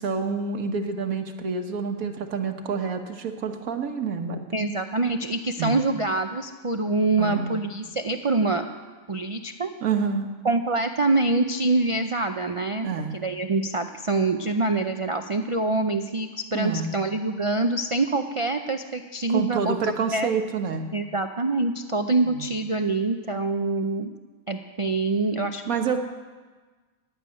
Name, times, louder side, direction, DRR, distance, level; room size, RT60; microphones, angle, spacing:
voice 1, 0.0-4.4 5.6-5.7 7.2-7.6 9.8-10.3 12.8-13.2 16.5-17.0 19.3-20.9 22.3-22.5 25.7-26.0, right 5 dB, 85° right, 5 dB, 1.6 m, -28 dB
voice 2, 4.5-8.7 9.1-9.7 10.4-12.9 13.1-20.3 20.9-24.1 24.5-25.6, right 2 dB, 50° right, 7 dB, 0.3 m, -25 dB
16.0 x 7.0 x 9.8 m, 1.4 s
omnidirectional pair, 1.4 m